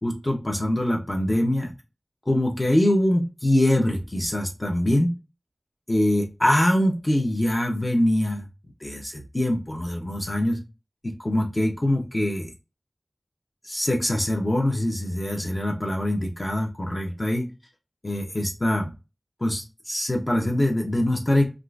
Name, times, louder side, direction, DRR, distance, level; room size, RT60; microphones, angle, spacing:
voice 1, 0.0-1.7 2.3-5.1 5.9-8.5 8.8-10.6 11.0-12.5 13.6-17.5 18.0-18.9 19.4-21.4, left 1 dB, 35° left, 0 dB, 0.7 m, -23 dB
3.6 x 2.4 x 2.4 m, 0.28 s
wide cardioid pair, 45°, 0 cm